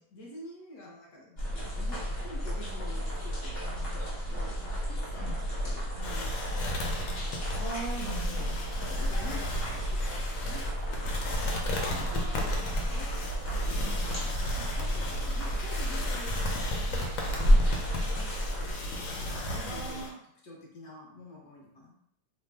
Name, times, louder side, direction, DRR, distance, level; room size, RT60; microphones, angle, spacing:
voice 1, 0.1-7.0 8.8-10.7 11.6-14.3 14.6-21.9, left 1 dB, 65° left, -2 dB, 1.1 m, -48 dB
sound 1, 1.4-18.7, equal, 40° left, 0.9 m, -31 dB
sound 2, 6.0-20.1, left 1 dB, 90° left, 1.3 m, -36 dB
voice 2, 7.5-8.6 11.8-12.5 13.8-14.0 19.6-20.1, right 2 dB, 65° right, -8 dB, 0.4 m, -40 dB
3.2 x 2.0 x 3.3 m, 0.71 s
omnidirectional pair, 2.0 m